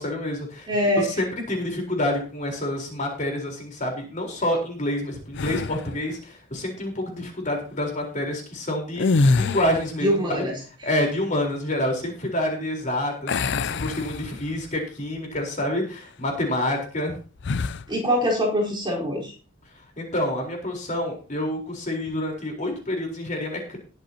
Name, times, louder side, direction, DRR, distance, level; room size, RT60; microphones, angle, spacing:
voice 1, 0.0-10.4 10.8-17.2 20.0-23.8, left 1 dB, 40° left, 1 dB, 4.2 m, -28 dB
voice 2, 0.7-1.1 10.0-10.6 17.9-19.3, equal, 25° right, -3 dB, 4.5 m, -23 dB
sound 1, 5.3-6.0 8.9-10.0 13.3-14.7 15.2-15.4 17.4-17.9, left 3 dB, 60° left, 0.5 m, -25 dB
20.0 x 8.0 x 2.9 m, 0.36 s
head